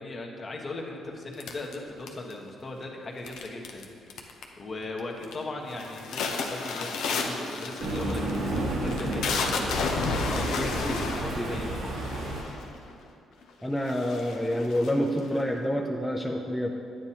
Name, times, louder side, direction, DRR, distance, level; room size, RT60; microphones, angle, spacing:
voice 1, 0.0-3.8 4.1-11.9, left 2 dB, 40° left, 0 dB, 1.2 m, -38 dB
sound 1, 1.4-2.5 3.3-3.8 4.1-4.6 5.0-5.4 5.7-12.8 13.4-13.5 13.8-15.4, left 4 dB, 85° left, 0.8 m, -32 dB
Thunder, 7.8-12.4, right 1 dB, 90° right, 1.7 m, -32 dB
voice 2, 10.3-11.0 11.4-11.6 13.6-16.7, equal, 5° left, 0 dB, 0.5 m, -28 dB
9.7 x 9.0 x 2.9 m, 2.6 s
cardioid pair, 90°, 0 cm